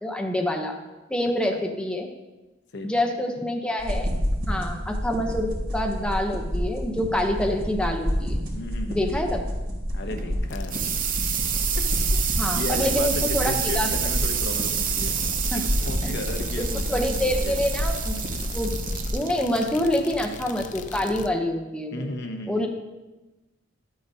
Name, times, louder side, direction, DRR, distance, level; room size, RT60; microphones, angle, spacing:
voice 1, 0.0-0.7 1.1-2.1 2.8-4.1 4.5-8.4 8.9-9.5 12.4-13.9 15.5-15.6 16.0-16.1 16.6-18.2 18.5-18.7 19.1-22.1 22.5-22.7, left 1 dB, 5° left, 2 dB, 0.8 m, -26 dB
voice 2, 2.7-3.0 8.5-9.2 9.9-11.0 11.8-15.2 15.5-17.6 21.9-22.7, left 2 dB, 60° left, 5 dB, 0.9 m, -35 dB
sound 1, 3.8-19.1, equal, 70° right, 2.7 m, -29 dB
sound 2, 10.0-21.3, right 9 dB, 45° right, 0.7 m, -29 dB
sound 3, 10.5-21.3, left 3 dB, 40° left, 0.5 m, -38 dB
12.5 x 8.6 x 2.8 m, 1.1 s
head